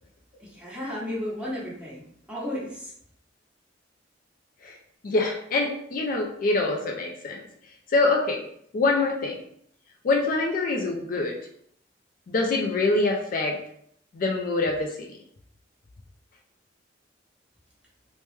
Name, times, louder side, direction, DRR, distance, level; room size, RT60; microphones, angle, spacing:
voice 1, 0.4-2.0 2.3-2.9, left 1 dB, 5° right, -7 dB, 1.0 m, -33 dB
voice 2, 5.0-7.4 7.9-8.4 8.7-9.4 10.0-11.4 12.3-13.6 14.1-15.1, left 3 dB, 50° left, 1 dB, 0.4 m, -25 dB
3.3 x 2.1 x 3.1 m, 0.69 s
head